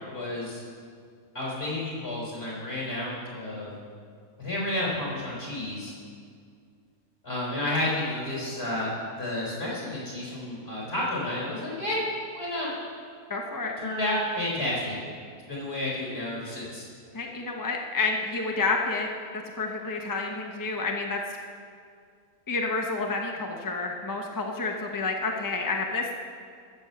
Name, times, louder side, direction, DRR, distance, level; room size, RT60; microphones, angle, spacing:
voice 1, 0.1-0.6 1.3-3.7 4.4-5.9 7.2-12.0 12.3-12.7 13.8-15.0 15.5-16.9, left 1 dB, 35° left, -5 dB, 4.3 m, -31 dB
voice 2, 13.3-13.7 17.1-19.1 19.6-21.2 22.5-26.1, left 3 dB, 20° left, 1 dB, 0.5 m, -29 dB
14.5 x 7.1 x 6.8 m, 2.2 s
omnidirectional pair, 1.8 m